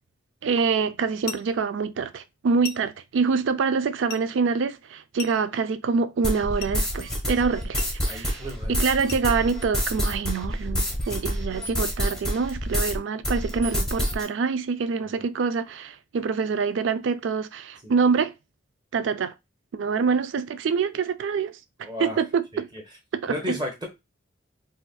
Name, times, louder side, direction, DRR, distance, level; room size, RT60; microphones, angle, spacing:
voice 1, 0.4-18.3 18.9-19.3 19.7-21.5 21.8-22.7 23.2-23.6, right 5 dB, 70° right, 0.4 m, -26 dB
sound 1, 1.2-1.6 2.6-3.0 4.1-4.3 5.2-5.6 6.6-6.8 7.8-8.0 9.1-9.3, left 8 dB, 55° left, 0.3 m, -38 dB
sound 2, 6.2-13.0 13.2-14.2, equal, 5° left, 0.7 m, -27 dB
voice 2, 8.1-8.8 10.9-11.0 15.0-15.3 17.8-17.9 21.8-22.2 22.5-22.8 23.3-23.9, left 1 dB, 25° right, 1.0 m, -34 dB
4.1 x 2.4 x 2.2 m
head